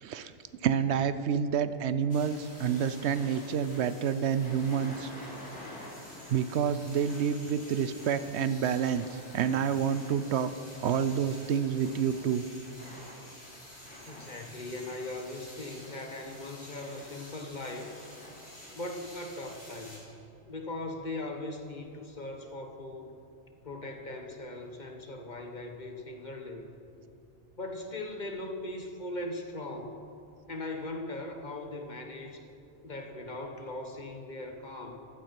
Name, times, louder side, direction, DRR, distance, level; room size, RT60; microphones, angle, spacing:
voice 1, 0.0-0.3 0.6-5.1 6.3-9.0 9.3-10.5 10.8-12.4, right 8 dB, 75° right, 13 dB, 0.9 m, -28 dB
sound 1, 2.1-20.0, left 1 dB, 85° left, 4.3 m, -48 dB
voice 2, 14.0-17.9 18.7-20.1 20.5-23.1 23.6-26.7 27.6-30.0 30.5-32.5 32.8-35.0, left 2 dB, 40° left, 4 dB, 1.3 m, -39 dB
15.5 x 12.5 x 5.8 m, 2.6 s
omnidirectional pair, 1.2 m